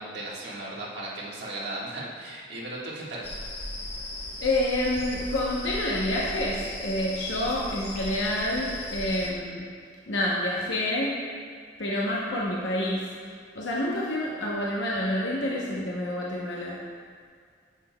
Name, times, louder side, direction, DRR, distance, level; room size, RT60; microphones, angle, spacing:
voice 1, 0.0-3.3, right 2 dB, 65° right, -5 dB, 1.6 m, -36 dB
sound 1, 3.2-9.3, left 1 dB, 30° left, 0.8 m, -37 dB
voice 2, 4.4-9.7 10.1-11.2 11.8-13.1 13.5-16.8, left 1 dB, 75° left, -5 dB, 0.9 m, -28 dB
9.4 x 7.5 x 2.2 m, 2.1 s
head